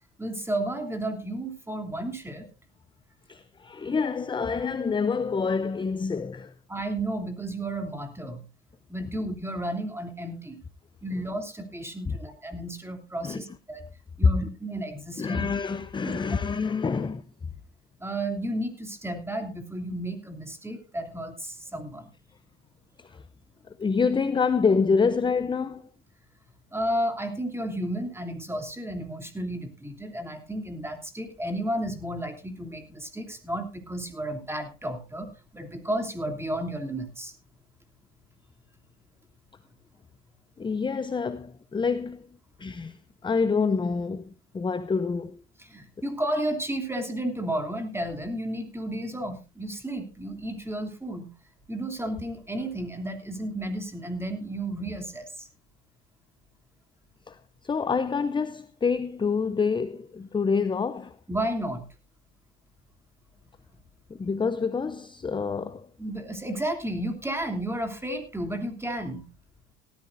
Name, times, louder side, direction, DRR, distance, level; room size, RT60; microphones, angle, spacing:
voice 1, 0.2-2.5 6.7-8.4 8.9-10.6 11.0-13.8 14.2-15.4 16.0-16.1 16.9-17.0 18.0-22.1 26.7-37.3 45.6-51.3 51.7-55.5 61.3-61.8 66.0-69.3, right 1 dB, 5° right, 2.9 m, -32 dB
voice 2, 3.3-6.5 12.1-12.2 13.2-13.4 15.2-17.2 23.0-23.2 23.8-25.9 40.6-42.3 42.6-43.0 43.2-45.4 57.3-61.2 64.1-65.9, left 5 dB, 15° left, 0.6 m, -27 dB
18.0 x 14.0 x 2.6 m
supercardioid pair, 100°, 33 cm